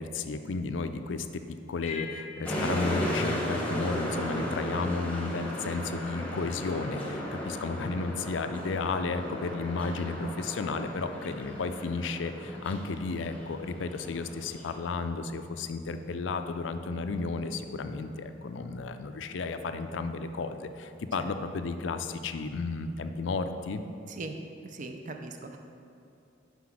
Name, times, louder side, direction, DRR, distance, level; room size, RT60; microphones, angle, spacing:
voice 1, 0.0-1.4 1.7-23.8, left 4 dB, 75° left, 9 dB, 0.4 m, -33 dB
sound 1, 1.8-4.6, left 6 dB, 35° left, 0.6 m, -45 dB
sound 2, 2.4-14.9, equal, 5° left, 1.0 m, -35 dB
voice 2, 24.6-25.6, right 3 dB, 40° right, 5 dB, 0.5 m, -40 dB
5.9 x 5.5 x 5.9 m, 2.6 s
head